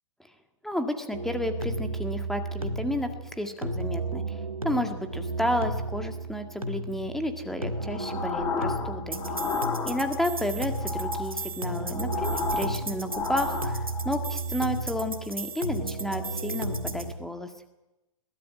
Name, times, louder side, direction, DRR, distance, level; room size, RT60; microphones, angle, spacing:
voice 1, 0.6-9.2 9.9-17.5, left 1 dB, ahead, 7 dB, 1.8 m, -32 dB
sound 1, 1.1-17.1, right 2 dB, 90° right, 1.9 m, -33 dB
sound 2, 7.8-10.4 10.7-14.2, left 4 dB, 20° left, 1.9 m, -33 dB
21.5 x 14.5 x 9.1 m, 1.0 s
figure-of-eight pair, 110°, 17 cm